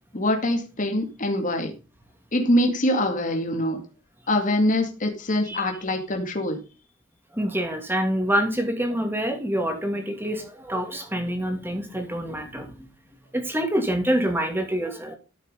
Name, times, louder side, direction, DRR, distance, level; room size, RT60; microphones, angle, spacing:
voice 1, 0.1-1.7 2.3-3.8 4.3-6.6, left 1 dB, 40° left, 3 dB, 2.2 m, -24 dB
voice 2, 7.3-12.9 13.3-15.2, equal, 10° right, 5 dB, 2.4 m, -26 dB
13.5 x 6.9 x 3.8 m, 0.30 s
head